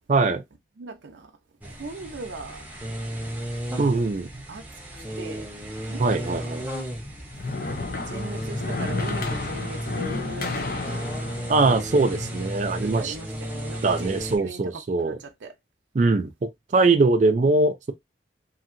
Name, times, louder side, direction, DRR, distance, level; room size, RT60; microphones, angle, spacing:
voice 1, 0.1-0.4 3.8-4.3 6.0-6.6 11.5-13.2 13.8-15.2 15.9-17.9, right 3 dB, 40° right, 0.4 m, -22 dB
voice 2, 0.8-1.3 1.6-2.7 4.5-4.7 4.9-5.5 5.9-6.5 7.6-11.0 12.8-14.6 15.0-15.5, right 3 dB, 85° right, 0.6 m, -39 dB
sound 1, 1.6-14.4, equal, 10° right, 0.7 m, -34 dB
sound 2, 6.9-13.1, left 3 dB, 50° left, 0.6 m, -32 dB
2.8 x 2.7 x 2.5 m
head